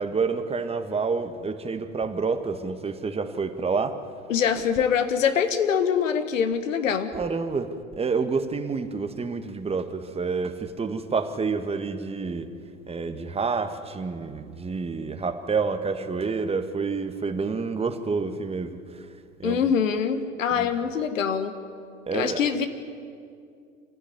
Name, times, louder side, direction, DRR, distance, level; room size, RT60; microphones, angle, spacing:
voice 1, 0.0-4.0 7.1-12.5 12.9-19.1 19.4-19.7 20.5-20.7 22.1-22.4, right 4 dB, 15° right, 8 dB, 1.6 m, -28 dB
voice 2, 4.3-7.1 19.4-21.5 22.1-22.7, left 7 dB, 70° left, 10 dB, 1.7 m, -24 dB
25.0 x 16.0 x 9.6 m, 2.3 s
figure-of-eight pair, 85°, 40 cm